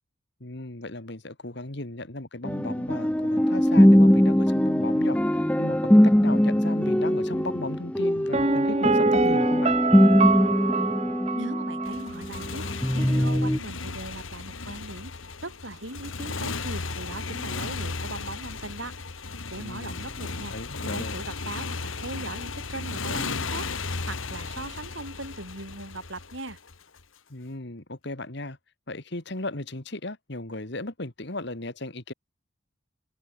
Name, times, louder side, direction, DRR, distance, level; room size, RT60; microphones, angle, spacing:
voice 1, 0.4-9.7 19.5-21.2 27.3-28.6 28.9-32.1, left 2 dB, 55° left, 2.3 m, -36 dB
sound 1, 2.4-12.5 12.8-13.6, equal, 5° left, 0.6 m, -21 dB
Piano, 8.3-12.1 12.4-12.5, right 3 dB, 30° right, 1.0 m, -25 dB
voice 2, 11.3-15.2 15.4-19.0 19.5-20.5 20.8-23.7 24.1-26.6, right 2 dB, 65° right, 5.7 m, -39 dB
Motorcycle, 11.8-27.0, left 4 dB, 75° left, 1.9 m, -35 dB
head